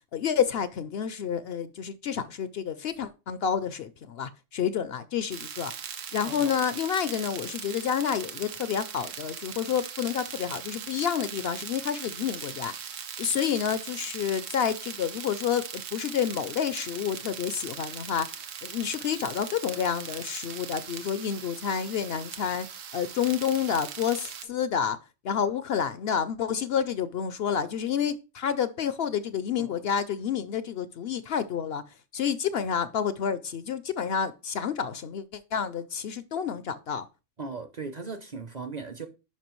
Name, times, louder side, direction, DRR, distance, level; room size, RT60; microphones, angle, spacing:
voice 1, 0.1-5.7 6.1-12.8 13.2-18.3 18.6-22.7 22.9-25.0 25.2-31.8 32.1-35.2 35.5-37.1, left 8 dB, 65° left, 0.7 m, -29 dB
sound 1, 5.3-24.4, right 7 dB, 90° right, 1.2 m, -40 dB
voice 2, 6.3-6.6 29.6-29.7 37.4-39.1, right 4 dB, 40° right, 0.7 m, -38 dB
10.0 x 5.5 x 3.0 m
omnidirectional pair, 1.3 m